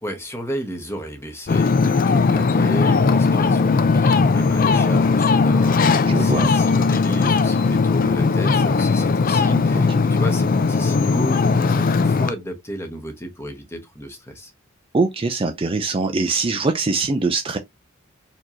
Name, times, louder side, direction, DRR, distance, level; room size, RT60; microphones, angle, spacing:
voice 1, 0.0-14.5, equal, 10° left, 1.0 m, -33 dB
Ocean, 1.5-12.3, left 4 dB, 45° left, 0.4 m, -18 dB
voice 2, 6.1-6.5 14.9-17.6, right 3 dB, 25° right, 0.4 m, -22 dB
4.3 x 2.9 x 3.0 m
head